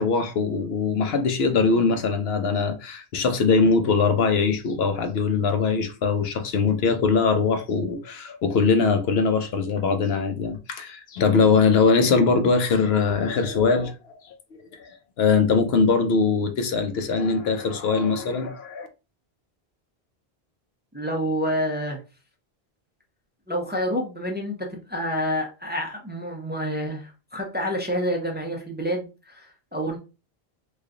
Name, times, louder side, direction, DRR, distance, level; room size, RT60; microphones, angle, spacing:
voice 1, 0.0-13.9 14.3-14.4 14.8-18.9, left 4 dB, 75° left, 0.9 m, -22 dB
voice 2, 20.9-22.0 23.5-30.0, equal, 10° right, 0.6 m, -28 dB
3.1 x 2.3 x 3.7 m
omnidirectional pair, 1.1 m